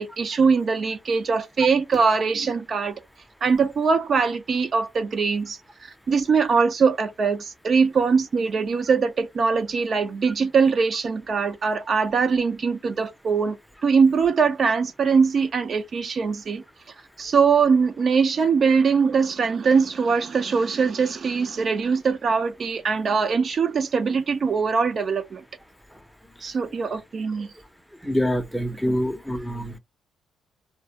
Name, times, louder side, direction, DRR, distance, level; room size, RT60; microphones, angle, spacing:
voice 1, 0.0-3.0 3.4-13.6 13.8-16.6 17.2-25.4 26.4-27.5 28.9-29.0, right 5 dB, 50° right, 0.4 m, -22 dB
voice 2, 28.0-29.8, equal, ahead, 0.6 m, -25 dB
2.3 x 2.1 x 2.7 m
cardioid pair, 90°, 0 cm